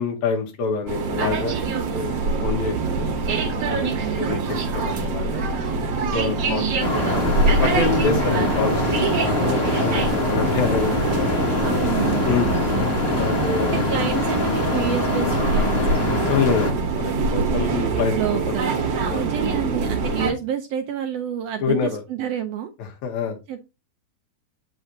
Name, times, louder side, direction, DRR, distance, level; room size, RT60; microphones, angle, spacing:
voice 1, 0.0-3.1 3.7-3.9 4.2-5.5 6.1-7.0 7.6-11.3 12.2-12.6 13.2-13.9 16.3-18.6 19.1-19.3 21.6-22.0 22.8-23.4, left 5 dB, 75° left, 2.5 m, -26 dB
sound 1, 0.9-20.3, right 3 dB, 60° right, 2.1 m, -25 dB
voice 2, 4.0-4.5 6.4-6.8 11.6-12.9 13.6-16.2 18.1-22.7 23.5-23.6, right 9 dB, 75° right, 1.5 m, -29 dB
sound 2, 6.8-16.7, left 2 dB, 35° left, 1.0 m, -24 dB
7.7 x 5.6 x 2.7 m
omnidirectional pair, 3.4 m